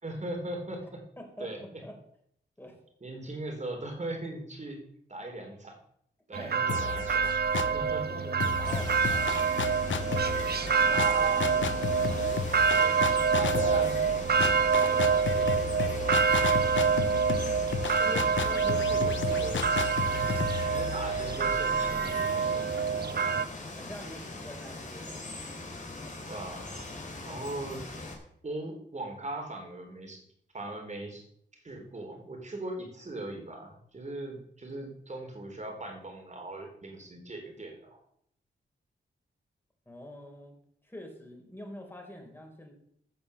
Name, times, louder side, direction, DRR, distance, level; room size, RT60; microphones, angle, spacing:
voice 1, 0.0-1.0 1.4-1.6 3.0-4.8 5.1-5.8 6.3-8.1 10.9-11.9 13.3-14.1 18.0-19.7 20.7-22.9 26.3-26.8 27.3-27.8 28.4-30.2 30.5-31.2 31.5-38.0, right 2 dB, 35° right, 3 dB, 3.9 m, -39 dB
voice 2, 1.2-2.0 2.6-2.8 6.4-6.6 7.6-9.3 9.8-12.3 12.6-13.6 14.5-16.0 23.7-25.3 39.9-40.5 40.8-42.7, equal, 10° left, 2 dB, 4.1 m, -47 dB
sound 1, 6.3-23.5, right 6 dB, 55° right, 0.8 m, -27 dB
sound 2, 6.7-7.9 8.4-22.1, left 7 dB, 75° left, 0.9 m, -34 dB
Water, 8.6-28.1, left 2 dB, 40° left, 3.3 m, -41 dB
15.0 x 6.2 x 7.0 m, 0.71 s
cardioid pair, 75°, 20 cm